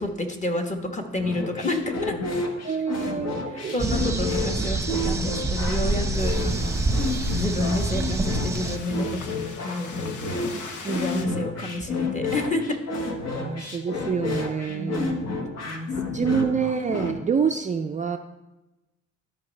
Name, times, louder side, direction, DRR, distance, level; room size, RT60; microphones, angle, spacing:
voice 1, 0.0-2.1 3.5-6.8 7.3-10.3 11.0-12.8 14.7-15.2 15.6-16.5, left 2 dB, 25° left, 3 dB, 1.3 m, -30 dB
sound 1, 1.2-17.2, left 3 dB, 60° left, 1.3 m, -31 dB
voice 2, 2.6-3.8 10.5-11.4 13.4-15.1 16.1-18.2, right 6 dB, 25° right, 5 dB, 0.4 m, -27 dB
sound 2, 3.8-8.8, right 2 dB, 10° right, 0.9 m, -26 dB
sound 3, 6.2-11.3, left 4 dB, 80° left, 1.0 m, -42 dB
13.0 x 5.4 x 3.2 m, 1.0 s
cardioid pair, 90°, 30 cm